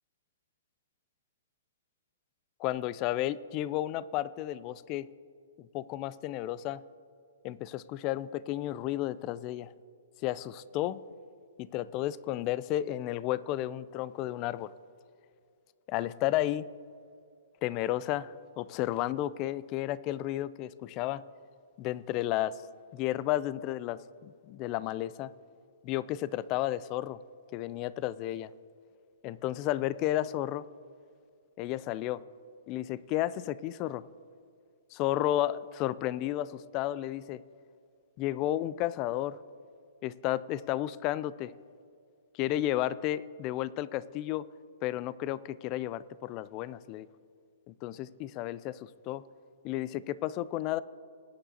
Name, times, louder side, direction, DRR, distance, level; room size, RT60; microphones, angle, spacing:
voice 1, 2.6-5.1 5.6-6.8 7.4-9.7 10.2-11.0 11.6-14.7 15.9-16.7 17.6-21.2 21.8-22.6 22.9-25.3 25.8-27.2 27.5-28.5 29.2-30.7 31.6-32.2 32.7-34.1 34.9-37.4 38.2-39.4 40.0-41.5 42.3-44.4 44.8-47.1 47.7-49.2 49.6-50.8, left 14 dB, 30° left, 19 dB, 0.3 m, -32 dB
20.0 x 9.3 x 2.8 m, 2.3 s
hypercardioid pair, 150°, 0 cm